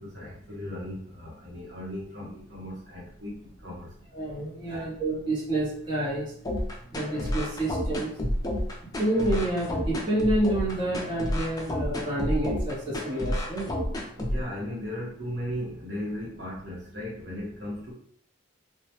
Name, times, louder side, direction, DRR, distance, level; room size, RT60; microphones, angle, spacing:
voice 1, 0.0-3.9 4.7-4.8 14.2-17.9, left 1 dB, 60° right, -5 dB, 0.8 m, -37 dB
voice 2, 4.1-6.2 6.9-8.1 9.0-13.7, right 1 dB, 25° right, -8 dB, 0.7 m, -28 dB
sound 1, 6.4-14.4, left 1 dB, 20° left, 0.3 m, -30 dB
2.2 x 2.0 x 2.8 m, 0.63 s
head